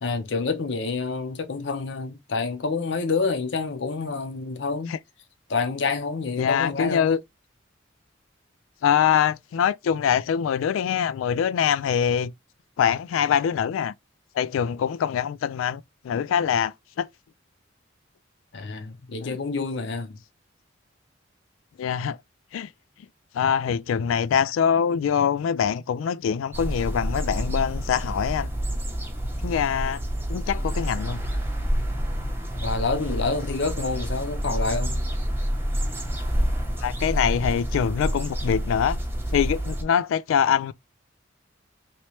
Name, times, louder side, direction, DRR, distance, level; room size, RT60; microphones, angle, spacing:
voice 1, 0.0-4.9 5.5-7.2 18.5-20.2 32.5-35.0, left 4 dB, 65° left, 0.7 m, -28 dB
voice 2, 6.4-7.2 8.8-12.3 12.8-13.9 14.3-17.1 19.2-19.4 21.8-22.2 22.5-22.7 23.3-28.5 29.4-30.0 30.3-31.2 36.8-39.0 39.3-40.7, left 8 dB, 90° left, 0.3 m, -24 dB
sound 1, 26.5-39.8, equal, 10° right, 0.7 m, -28 dB
3.1 x 2.9 x 2.8 m
head